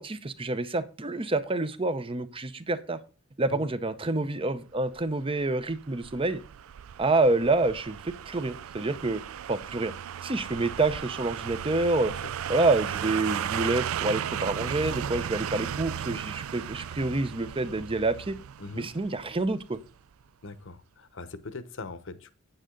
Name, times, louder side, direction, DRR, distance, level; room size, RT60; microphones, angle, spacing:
voice 1, 0.0-3.0 3.4-6.4 7.0-9.2 9.5-9.9 10.2-12.1 12.5-18.4 18.8-19.8, right 2 dB, 25° right, 13 dB, 0.7 m, -27 dB
sound 1, 5.0-19.9 20.2-20.3, right 9 dB, 80° right, 0.4 m, -36 dB
voice 2, 18.6-18.9 20.4-22.3, left 3 dB, 65° left, 13 dB, 1.0 m, -41 dB
9.0 x 9.0 x 3.9 m, 0.35 s
head